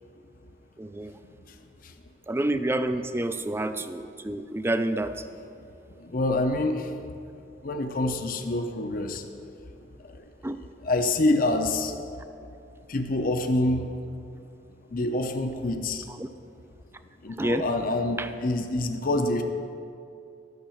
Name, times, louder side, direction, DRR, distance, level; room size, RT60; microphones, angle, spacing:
voice 1, 0.8-1.1 2.3-5.2 10.4-10.6 16.2-16.3 17.4-17.7 18.2-18.3, right 1 dB, 15° right, 10 dB, 0.4 m, -28 dB
voice 2, 6.0-6.9 7.6-9.3 10.0-10.2 10.8-12.0 12.9-13.9 14.9-16.1 17.2-19.4, left 2 dB, 50° left, 5 dB, 0.7 m, -26 dB
12.0 x 6.0 x 7.1 m, 2.5 s
head